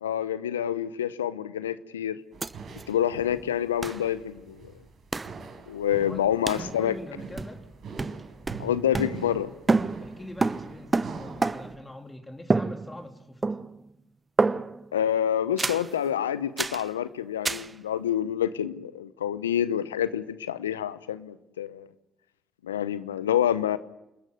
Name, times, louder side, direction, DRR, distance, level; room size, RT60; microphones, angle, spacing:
voice 1, 0.0-2.2 2.9-4.7 5.7-6.9 8.6-9.5 14.9-21.9 22.6-23.8, left 10 dB, 90° left, 15 dB, 0.8 m, -27 dB
sound 1, 2.3-11.7, right 4 dB, 60° right, 5.0 m, -43 dB
sound 2, 2.4-2.5 2.8-2.9 3.8-4.0 5.1-5.4 6.5-6.7 7.4-7.7 8.0-9.4 9.7-11.8 12.5-13.1 13.4-13.9 14.4-14.9 15.6-15.9 16.6-16.9 17.4-17.7, right 3 dB, 30° right, 0.9 m, -28 dB
voice 2, 6.5-7.6 9.9-13.4, left 1 dB, 20° left, 4 dB, 3.2 m, -43 dB
27.5 x 14.0 x 9.5 m, 0.92 s
hypercardioid pair, 45°, 0 cm